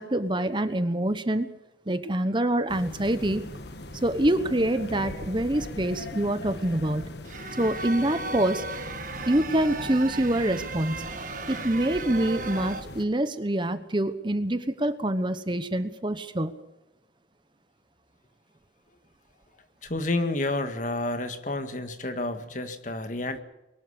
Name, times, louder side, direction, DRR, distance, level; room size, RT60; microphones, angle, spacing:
voice 1, 0.0-1.5 1.9-3.4 4.0-7.1 7.6-8.6 9.3-11.1 11.5-16.6, right 1 dB, 25° right, 11 dB, 1.0 m, -26 dB
sound 1, 2.7-13.1, left 2 dB, 65° left, 1.4 m, -40 dB
sound 2, 7.2-12.8, right 3 dB, 45° right, 1.4 m, -36 dB
voice 2, 19.8-23.4, left 2 dB, 45° left, 8 dB, 1.8 m, -30 dB
23.0 x 12.0 x 9.9 m, 0.96 s
head